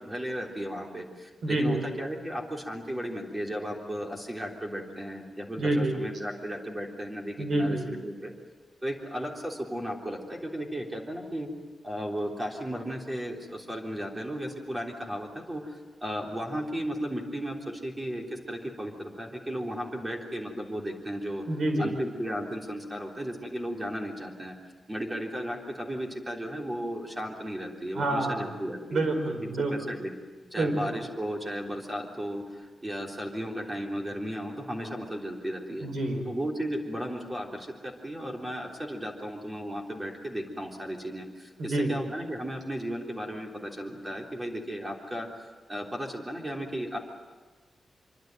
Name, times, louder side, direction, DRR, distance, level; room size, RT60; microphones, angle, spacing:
voice 1, 0.0-8.3 8.8-11.5 11.8-21.4 21.8-24.5 24.9-29.1 29.4-30.2 30.5-35.9 36.2-45.3 45.7-47.0, equal, 15° right, 0 dB, 3.5 m, -35 dB
voice 2, 1.4-1.8 5.6-5.9 7.4-7.9 21.5-21.9 27.9-28.5 28.9-29.9 30.6-30.9 35.8-36.3 41.6-41.9, right 2 dB, 55° right, 5 dB, 5.1 m, -27 dB
26.0 x 24.5 x 9.2 m, 1.3 s
wide cardioid pair, 170°, 0 cm